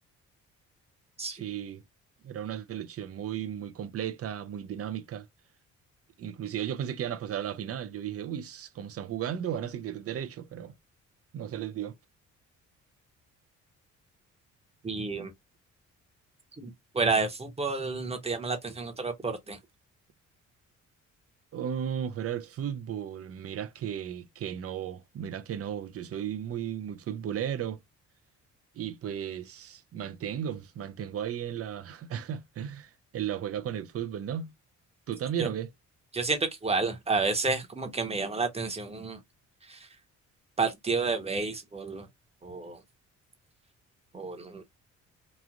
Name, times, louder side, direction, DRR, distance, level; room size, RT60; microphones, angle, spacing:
voice 1, 1.2-1.8 2.2-5.3 6.2-10.7 11.3-12.0 21.5-27.8 28.8-34.5 35.1-35.7, right 9 dB, 50° right, 0.6 m, -35 dB
voice 2, 14.8-15.3 16.6-19.6 35.4-35.5 36.1-39.2 39.6-39.9 40.6-42.1 42.4-42.8 44.1-44.6, right 4 dB, 20° right, 1.0 m, -30 dB
3.1 x 2.4 x 2.4 m
cardioid pair, 90°, 30 cm